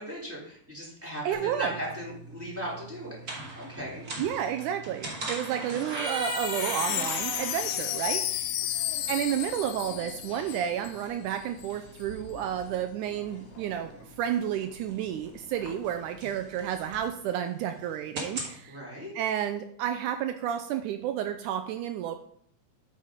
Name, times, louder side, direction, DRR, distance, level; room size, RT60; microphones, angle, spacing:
voice 1, 0.0-4.0 18.7-19.1, equal, 5° right, -5 dB, 2.8 m, -38 dB
voice 2, 1.0-1.8 4.2-8.6 9.1-13.9 14.2-18.8 19.2-22.2, right 10 dB, 80° right, 8 dB, 1.9 m, -31 dB
sound 1, 1.3-18.6, right 2 dB, 40° right, 1.5 m, -41 dB
Wind chime, 5.8-11.0 11.3-11.4 11.6-12.1, left 13 dB, 80° left, 2.2 m, -33 dB
sound 2, 6.4-17.1, left 3 dB, 60° left, 1.5 m, -50 dB
8.4 x 5.7 x 5.0 m, 0.64 s
omnidirectional pair, 3.9 m